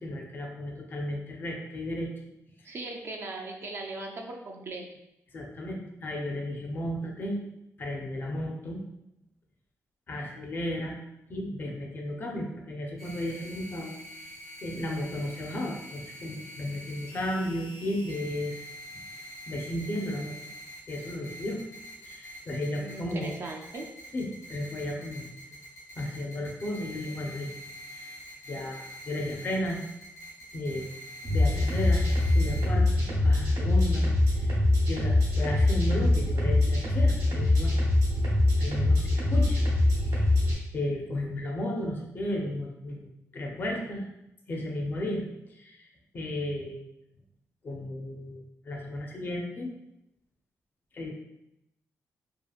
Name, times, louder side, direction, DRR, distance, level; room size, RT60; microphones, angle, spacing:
voice 1, 0.0-2.1 2.6-2.8 5.3-7.4 7.8-8.8 10.1-11.0 11.3-14.3 14.6-18.7 19.1-20.4 20.9-21.6 22.0-23.4 24.1-25.3 26.0-27.5 27.9-28.2 28.5-29.8 30.5-30.9 31.3-34.5 34.9-37.8 38.6-39.6 39.9-40.3 40.7-44.1 44.5-45.2 45.5-45.9 46.1-46.8 47.6-49.7 50.9-51.1, left 1 dB, 35° left, 1 dB, 0.5 m, -34 dB
voice 2, 2.6-4.8 22.7-23.9, right 2 dB, 45° right, 2 dB, 0.4 m, -39 dB
sound 1, 13.0-32.7, equal, 85° left, 1.0 m, -45 dB
sound 2, 31.2-40.5, left 2 dB, 70° right, 0.9 m, -23 dB
2.8 x 2.4 x 2.3 m, 0.84 s
wide cardioid pair, 150°, 6 cm